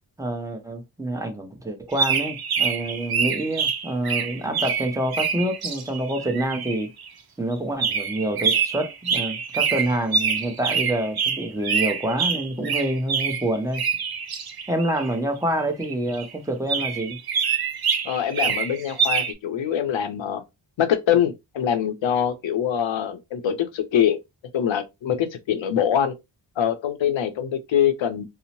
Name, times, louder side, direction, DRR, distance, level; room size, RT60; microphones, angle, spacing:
voice 1, 0.2-6.9 7.4-13.8 14.7-17.2, right 1 dB, 5° right, 0.8 m, -27 dB
sound 1, 1.9-7.1 7.8-15.1 15.8-16.3 16.7-19.3, right 6 dB, 55° right, 0.7 m, -26 dB
voice 2, 18.0-20.4 20.8-24.2 24.5-26.1 26.6-28.2, left 9 dB, 90° left, 0.6 m, -24 dB
2.7 x 2.1 x 2.9 m
cardioid pair, 65°, 44 cm